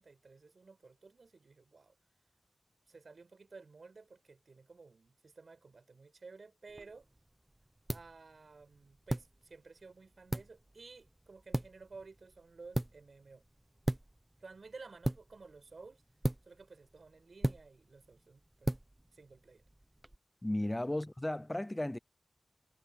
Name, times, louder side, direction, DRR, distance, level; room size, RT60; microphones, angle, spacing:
voice 1, 0.0-2.0 2.9-7.1 7.9-13.4 14.4-16.0 16.4-18.7 19.1-19.6 20.6-20.8, right 4 dB, 70° right, 7.2 m, -54 dB
sound 1, 6.7-20.2, right 1 dB, 20° right, 1.0 m, -40 dB
voice 2, 20.4-22.0, left 1 dB, 20° left, 0.5 m, -35 dB
cardioid pair, 45°, 0 cm